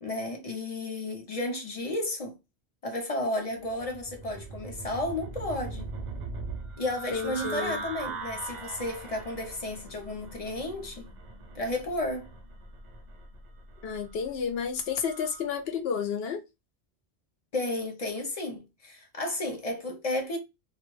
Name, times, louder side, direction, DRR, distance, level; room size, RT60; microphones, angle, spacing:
voice 1, 0.0-2.4 2.8-5.9 6.8-11.1 11.5-12.3 17.5-20.4, left 1 dB, 45° left, 0.6 m, -33 dB
sound 1, 3.7-15.5, right 3 dB, 55° right, 0.5 m, -41 dB
voice 2, 7.1-7.8 13.8-16.4, left 6 dB, 75° left, 0.8 m, -31 dB
2.3 x 2.2 x 3.0 m
omnidirectional pair, 1.1 m